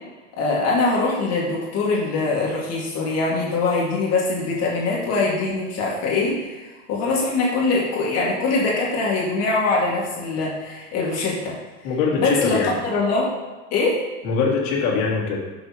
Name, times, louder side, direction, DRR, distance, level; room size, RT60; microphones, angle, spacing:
voice 1, 0.4-11.6 12.2-12.6 12.8-13.3 13.7-14.0, left 3 dB, 40° left, -4 dB, 2.0 m, -23 dB
voice 2, 11.8-12.7 14.2-15.4, left 5 dB, 60° left, -3 dB, 2.9 m, -22 dB
12.0 x 6.2 x 2.9 m, 1.2 s
supercardioid pair, 125°, 37 cm